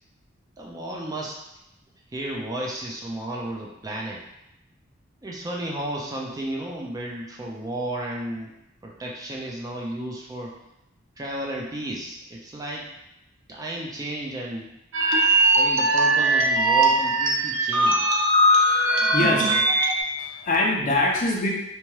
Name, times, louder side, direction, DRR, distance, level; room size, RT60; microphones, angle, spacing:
voice 1, 0.6-1.4 2.1-4.2 5.2-8.5 8.8-10.5 11.2-12.9 13.5-14.7 15.5-18.1 19.1-19.6, right 1 dB, 20° right, -2 dB, 0.3 m, -33 dB
sound 1, 14.9-20.0, right 1 dB, 75° right, 0.5 m, -20 dB
voice 2, 18.6-19.6 20.2-21.5, left 2 dB, 40° left, -1 dB, 0.5 m, -24 dB
2.8 x 2.2 x 3.0 m, 0.87 s
head